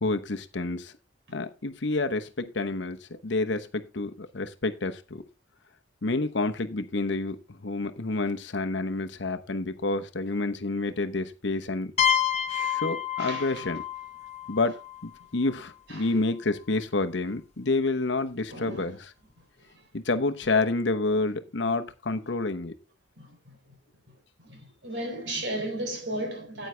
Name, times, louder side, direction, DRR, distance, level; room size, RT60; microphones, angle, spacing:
voice 1, 0.0-0.9 1.3-5.2 6.0-11.9 12.5-13.8 14.5-19.1 19.9-22.7, left 3 dB, 65° left, 0.9 m, -29 dB
sound 1, 12.0-15.6, left 8 dB, 35° left, 0.8 m, -29 dB
voice 2, 13.2-13.7 15.3-15.4 15.9-16.1 18.5-19.0 19.7-19.9 23.2-23.6 24.4-26.7, right 1 dB, 60° right, 4.0 m, -35 dB
9.4 x 9.1 x 3.3 m
head